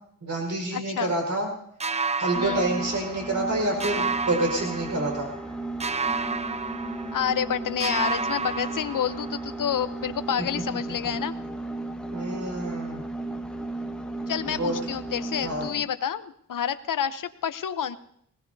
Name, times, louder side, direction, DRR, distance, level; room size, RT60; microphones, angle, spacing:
voice 1, 0.2-1.5 2.2-5.3 12.1-13.0 14.5-14.7 15.4-15.7, right 2 dB, 60° right, 1 dB, 4.9 m, -28 dB
voice 2, 0.7-1.1 2.4-2.7 7.1-11.3 14.3-18.0, left 8 dB, 70° left, 12 dB, 0.8 m, -29 dB
sound 1, 1.8-3.5 3.8-5.5 5.8-7.5 7.8-9.5, right 4 dB, 20° right, 0.5 m, -31 dB
sound 2, 2.4-15.9, right 2 dB, 5° left, 1.1 m, -35 dB
20.0 x 19.0 x 2.8 m, 0.68 s
wide cardioid pair, 100°, 33 cm